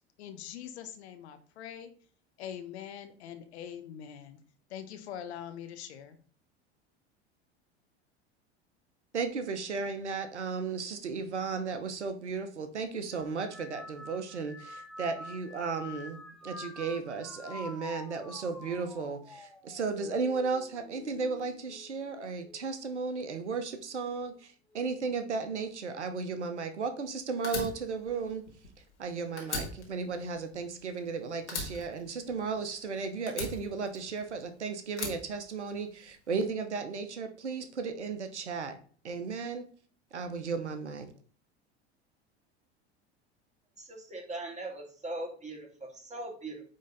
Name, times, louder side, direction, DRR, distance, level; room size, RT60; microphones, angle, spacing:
voice 1, 0.2-1.9 2.4-4.4 4.7-6.2, left 9 dB, 70° left, 1.2 m, -43 dB
voice 2, 9.1-28.4 29.0-38.8 39.0-39.6 40.1-41.1, right 4 dB, 90° right, 1.1 m, -35 dB
sound 1, 13.1-22.7 23.2-23.7 24.7-25.1, left 2 dB, ahead, 1.0 m, -47 dB
Fire, 27.4-29.1 29.4-31.1 31.5-32.8 33.3-34.4 34.9-36.1, left 3 dB, 90° left, 2.2 m, -39 dB
voice 3, 43.8-46.6, right 2 dB, 20° right, 2.8 m, -40 dB
9.3 x 3.8 x 4.0 m
hypercardioid pair, 85°, 33 cm